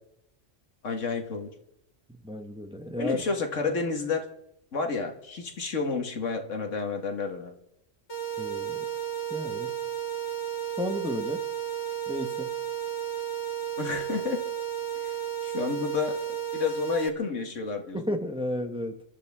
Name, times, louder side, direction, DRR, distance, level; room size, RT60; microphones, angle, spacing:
voice 1, 0.8-1.5 3.0-4.2 4.7-7.5 13.8-14.4 15.4-18.0, left 4 dB, 85° left, 4 dB, 2.0 m, -30 dB
voice 2, 2.1-3.2 8.4-8.8 9.3-9.7 10.8-11.4 12.1-12.5 17.9-19.0, left 1 dB, 5° right, 5 dB, 1.1 m, -33 dB
sound 1, 8.1-17.1, right 10 dB, 65° left, 2.0 m, -33 dB
30.0 x 13.0 x 3.6 m, 0.83 s
omnidirectional pair, 1.2 m